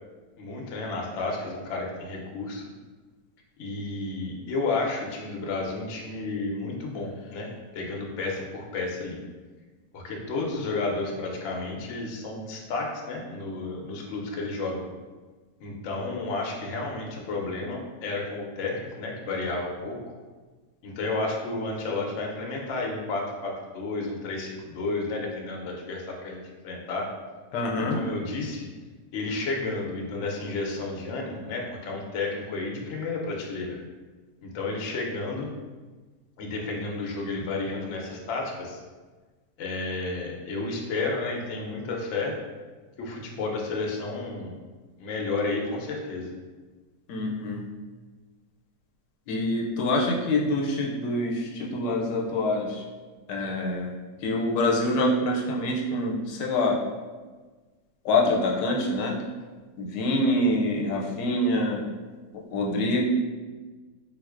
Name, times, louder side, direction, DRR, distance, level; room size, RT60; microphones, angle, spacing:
voice 1, 0.4-2.6 3.6-9.2 9.9-14.8 15.6-20.0 20.8-27.1 27.8-28.7 29.1-33.8 34.4-35.5 36.4-38.8 39.6-42.3 43.0-44.5 45.0-46.3, left 3 dB, 65° left, -1 dB, 0.7 m, -31 dB
voice 2, 27.5-28.0 47.1-47.6 49.3-52.8 53.3-53.9 54.2-56.8 58.0-59.2 59.8-61.8 62.5-63.0, left 1 dB, 85° left, -1 dB, 1.2 m, -25 dB
3.7 x 2.5 x 2.4 m, 1.3 s
omnidirectional pair, 1.8 m